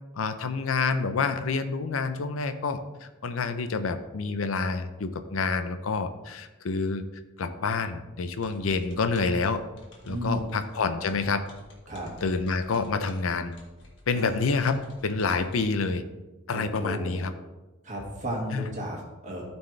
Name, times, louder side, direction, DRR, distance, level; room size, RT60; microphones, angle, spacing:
voice 1, 0.2-7.0 7.4-9.6 10.0-11.4 12.2-13.5 14.1-16.0 16.5-17.3 18.5-18.7, left 4 dB, 85° left, 10 dB, 0.6 m, -28 dB
sound 1, 8.4-15.7, left 2 dB, 55° left, 1.7 m, -53 dB
voice 2, 10.1-10.6 11.9-12.1 14.1-14.4 16.5-17.3 17.8-19.4, equal, 35° right, -2 dB, 1.8 m, -34 dB
13.0 x 4.4 x 3.2 m, 1.1 s
head